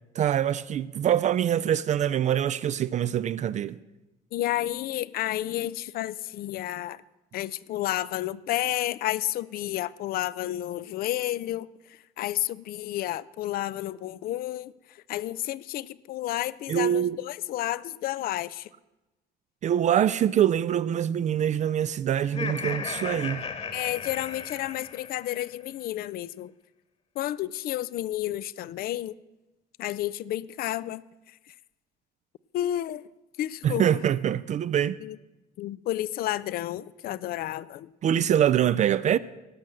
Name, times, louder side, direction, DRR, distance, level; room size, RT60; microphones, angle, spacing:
voice 1, 0.2-3.8 16.7-17.2 19.6-23.4 33.6-35.0 38.0-39.2, right 10 dB, 45° right, 0.4 m, -24 dB
voice 2, 4.3-7.0 7.3-18.7 23.7-26.5 27.2-29.2 29.8-31.0 32.5-33.0 33.4-33.9 35.0-35.2 35.6-37.9, left 14 dB, 60° left, 0.4 m, -31 dB
Laughter, 22.2-25.4, left 5 dB, 35° left, 1.4 m, -35 dB
17.0 x 6.4 x 7.5 m
cardioid pair, 110°, 17 cm